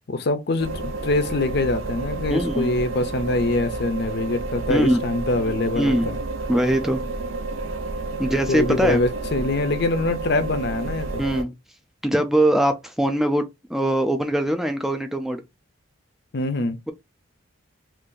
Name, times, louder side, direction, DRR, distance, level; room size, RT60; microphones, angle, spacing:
voice 1, 0.1-6.2 8.5-11.2 16.3-16.8, left 2 dB, 50° left, 0.5 m, -24 dB
sound 1, 0.6-11.4, right 3 dB, 75° right, 0.5 m, -30 dB
voice 2, 2.3-2.7 4.7-5.0 5.7-6.1 6.5-7.0 8.2-9.0 11.2-11.5 12.0-15.4, right 1 dB, ahead, 0.4 m, -22 dB
2.6 x 2.5 x 3.7 m
head